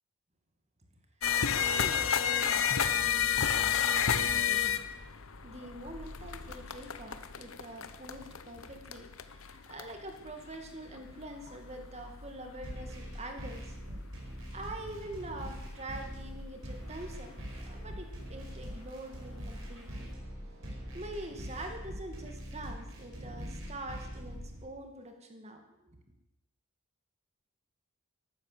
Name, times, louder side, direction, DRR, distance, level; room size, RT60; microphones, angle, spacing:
sound 1, 1.2-16.6 17.3-17.5 17.8-18.5 19.1-19.2 19.7-19.8, left 8 dB, 75° left, 1.0 m, -32 dB
voice 1, 1.6-4.8 5.4-14.0 14.5-17.3 17.7-20.1 20.9-26.0, right 1 dB, 30° right, 4 dB, 2.2 m, -45 dB
sound 2, 12.6-24.6, equal, 65° right, 4.8 m, -43 dB
14.5 x 12.0 x 6.9 m, 0.91 s
head